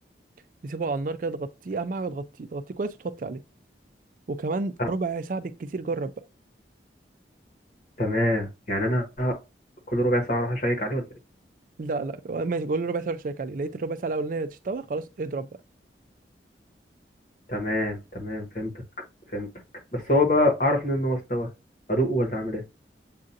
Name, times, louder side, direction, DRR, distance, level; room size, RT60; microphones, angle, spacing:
voice 1, 0.6-3.4 4.3-6.1 11.8-15.5, right 3 dB, 50° right, 0.4 m, -30 dB
voice 2, 8.0-9.3 9.9-11.0 17.5-18.7 19.3-19.5 19.9-21.5 21.9-22.6, left 1 dB, 45° left, 1.3 m, -25 dB
7.4 x 2.5 x 2.6 m
head